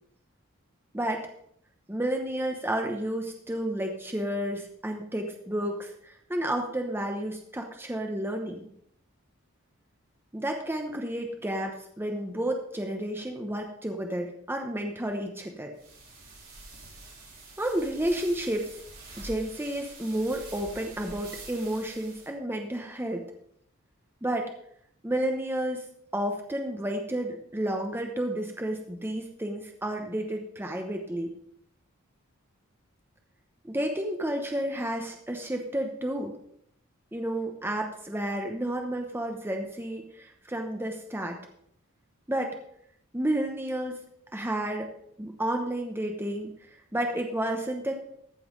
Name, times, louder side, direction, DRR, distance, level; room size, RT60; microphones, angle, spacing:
voice 1, 0.9-1.3 1.9-8.7 10.3-15.7 17.6-18.8 19.2-23.2 24.2-24.5 25.0-25.9 26.1-31.3 33.6-36.4 37.1-41.4 42.3-42.6 43.1-44.0 44.3-44.9 45.2-48.0, right 1 dB, 10° right, 3 dB, 0.9 m, -31 dB
sound 1, 15.8-22.3, right 2 dB, 40° right, 4.1 m, -46 dB
14.5 x 5.6 x 5.3 m, 0.69 s
head